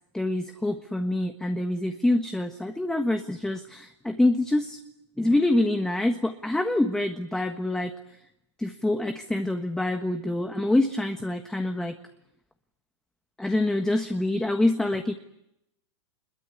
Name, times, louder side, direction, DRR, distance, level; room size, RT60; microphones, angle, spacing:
voice 1, 0.1-4.8 5.2-7.9 8.6-12.0 13.4-15.1, left 1 dB, 5° left, 6 dB, 1.4 m, -26 dB
24.0 x 22.0 x 9.8 m, 0.80 s
hypercardioid pair, 140°, 15 cm